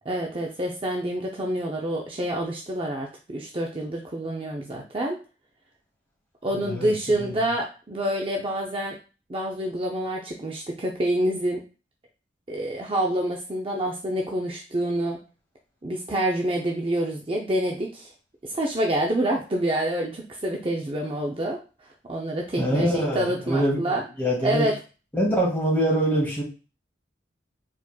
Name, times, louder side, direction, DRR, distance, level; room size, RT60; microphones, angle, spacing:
voice 1, 0.1-5.2 6.4-9.0 9.3-11.6 12.5-15.2 15.8-18.1 18.4-24.0 24.4-24.7, right 1 dB, 30° right, 0 dB, 0.5 m, -27 dB
voice 2, 6.6-7.4 22.6-24.7 25.1-26.4, equal, 10° left, -5 dB, 2.2 m, -24 dB
4.9 x 4.1 x 2.3 m, 0.34 s
head